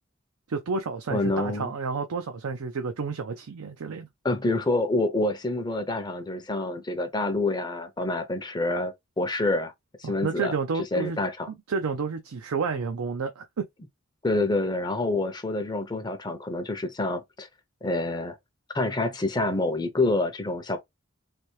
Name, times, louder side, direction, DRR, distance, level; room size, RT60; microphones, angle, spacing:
voice 1, 0.5-4.1 10.0-11.2 11.5-13.6, right 4 dB, 90° right, 0.5 m, -30 dB
voice 2, 1.1-1.7 4.2-9.7 10.0-10.5 10.9-11.5 14.2-17.5 17.8-18.4 18.7-20.8, left 2 dB, 20° left, 0.5 m, -27 dB
3.3 x 2.7 x 3.0 m
head